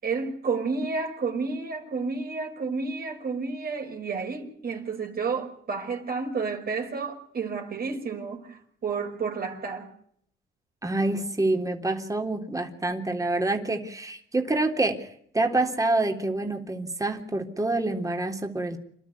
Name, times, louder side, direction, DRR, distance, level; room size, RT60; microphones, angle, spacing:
voice 1, 0.0-9.9, right 4 dB, 50° right, 5.5 m, -31 dB
voice 2, 10.8-15.0 15.3-18.8, right 2 dB, 15° right, 3.6 m, -27 dB
28.0 x 13.0 x 9.6 m
cardioid pair, 90°, 20 cm